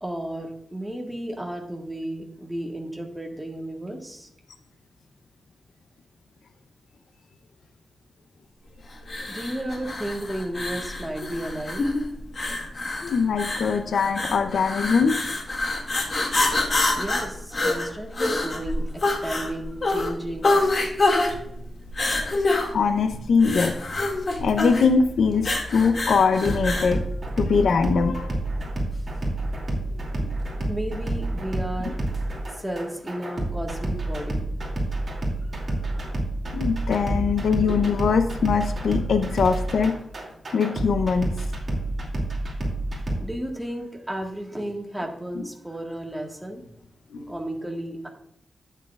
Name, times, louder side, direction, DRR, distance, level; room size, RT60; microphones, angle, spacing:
voice 1, 0.0-4.3 9.0-11.9 17.0-20.6 21.4-21.5 28.9-29.0 30.7-34.5 35.1-36.0 37.2-37.4 40.9-41.0 43.1-46.6 47.3-48.1, right 1 dB, 5° right, 0 dB, 1.5 m, -34 dB
sound 1, 9.0-27.0, left 2 dB, 40° left, 2.1 m, -26 dB
voice 2, 13.1-15.1 22.7-23.7 24.4-27.0 27.4-28.4 36.5-40.0 40.5-41.3 47.1-47.3, left 5 dB, 80° left, 8 dB, 0.7 m, -22 dB
sound 2, 26.4-43.2, right 1 dB, 40° right, 2.6 m, -29 dB
12.0 x 8.5 x 2.4 m, 0.74 s
wide cardioid pair, 130°, 0 cm